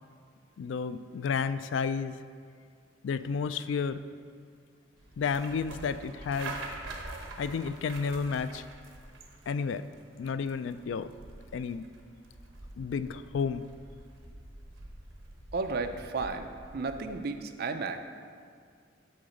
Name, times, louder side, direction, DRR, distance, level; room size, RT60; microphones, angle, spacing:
voice 1, 0.6-2.2 3.0-4.1 5.2-6.6 7.4-8.6 9.5-9.8 10.2-11.1 11.5-11.8 12.8-13.6, left 5 dB, 70° left, 13 dB, 0.3 m, -31 dB
sound 1, 5.0-17.2, right 2 dB, 85° right, 0.9 m, -46 dB
voice 2, 15.5-18.0, right 4 dB, 55° right, 7 dB, 0.5 m, -33 dB
8.7 x 3.8 x 6.5 m, 2.2 s
head